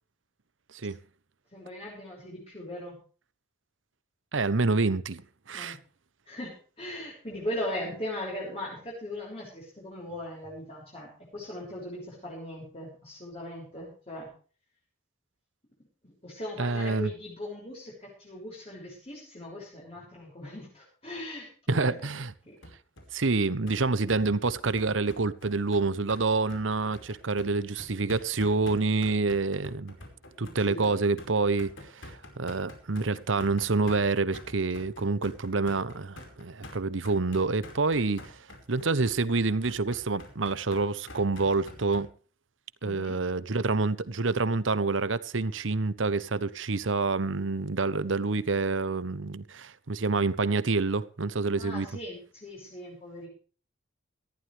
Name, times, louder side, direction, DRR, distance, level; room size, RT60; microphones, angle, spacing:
voice 1, 1.5-3.0 5.5-5.8 6.3-14.3 16.0-22.0 22.5-22.6 30.7-31.0 42.8-43.2 51.6-53.3, left 1 dB, 30° left, 6.2 m, -39 dB
voice 2, 4.3-5.2 5.5-5.8 16.6-17.1 21.7-22.3 23.1-30.0 30.4-38.4 38.7-42.1 42.8-51.9, right 3 dB, 90° right, 1.0 m, -27 dB
sound 1, 22.6-42.0, left 1 dB, 85° left, 4.9 m, -47 dB
19.0 x 14.5 x 3.4 m
head